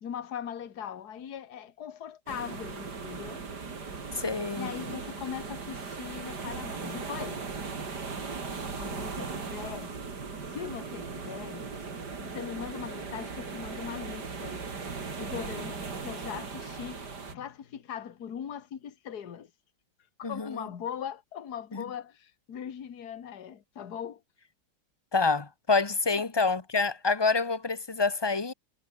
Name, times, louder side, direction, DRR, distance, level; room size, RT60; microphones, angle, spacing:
voice 1, 0.0-3.4 4.6-7.4 8.7-10.0 10.5-11.7 12.2-14.6 15.2-19.5 20.2-24.2 26.1-26.3, left 8 dB, 50° left, 2.0 m, -40 dB
sound 1, 2.3-17.4, right 4 dB, 50° right, 3.4 m, -38 dB
voice 2, 4.1-4.7 20.2-20.7 21.7-21.8 25.1-28.5, left 4 dB, 20° left, 0.7 m, -27 dB
omnidirectional pair, 2.3 m